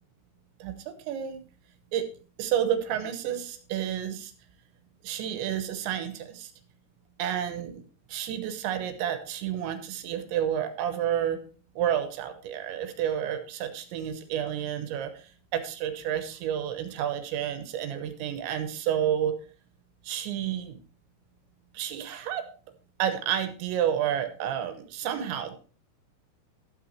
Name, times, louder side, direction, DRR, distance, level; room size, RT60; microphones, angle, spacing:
voice 1, 0.6-1.5 1.9-2.1 2.4-4.3 5.0-6.5 7.2-7.8 8.1-11.4 11.8-19.4 20.0-20.8 21.7-22.5 23.0-25.5, right 10 dB, 75° right, 9 dB, 3.0 m, -30 dB
12.0 x 6.7 x 4.4 m, 0.38 s
omnidirectional pair, 5.8 m